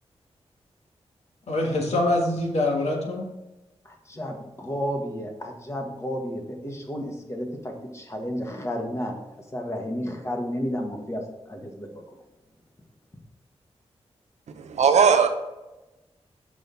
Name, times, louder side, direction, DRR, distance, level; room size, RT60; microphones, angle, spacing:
voice 1, 1.5-3.2, left 1 dB, 75° left, 0 dB, 1.6 m, -24 dB
voice 2, 3.8-12.2, equal, 25° left, 2 dB, 1.5 m, -32 dB
voice 3, 14.5-15.3, right 6 dB, 85° right, 7 dB, 0.8 m, -19 dB
6.2 x 5.3 x 4.5 m, 1.0 s
cardioid pair, 70°, 11 cm